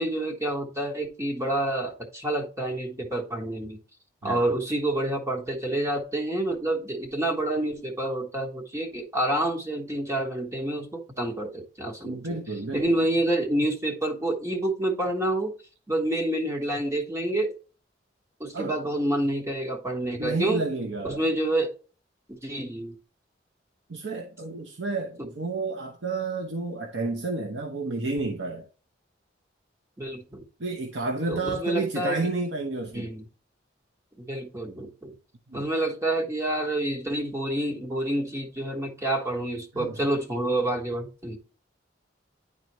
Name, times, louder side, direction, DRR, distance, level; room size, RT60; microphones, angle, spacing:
voice 1, 0.0-3.8 4.2-12.4 12.7-15.5 15.9-17.6 18.4-20.6 21.0-21.7 22.3-22.9 30.0-30.4 31.3-32.3 32.9-33.2 34.2-35.1 35.5-41.4, right 1 dB, 15° right, 1.3 m, -28 dB
voice 2, 12.0-12.8 18.5-18.7 20.2-21.2 23.9-28.7 30.6-33.1 35.5-35.6 39.8-40.0, right 3 dB, 80° right, 1.0 m, -31 dB
10.5 x 4.1 x 3.1 m
head